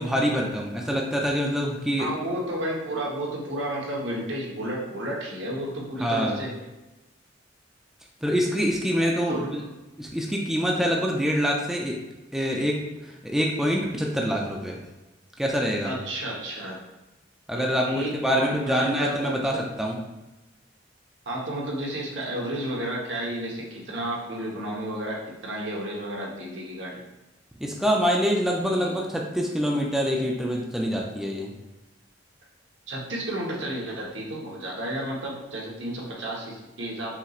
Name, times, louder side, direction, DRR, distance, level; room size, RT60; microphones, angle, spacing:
voice 1, 0.0-2.1 6.0-6.4 8.2-9.6 10.0-12.0 12.3-12.8 13.2-14.8 15.4-15.9 17.5-20.0 27.6-31.5, equal, ahead, -1 dB, 0.4 m, -25 dB
voice 2, 2.0-6.5 9.3-9.5 15.8-16.8 17.5-19.6 21.3-27.0 28.6-29.0 32.9-37.1, right 1 dB, 75° right, -3 dB, 1.1 m, -32 dB
5.6 x 3.0 x 2.4 m, 1.0 s
head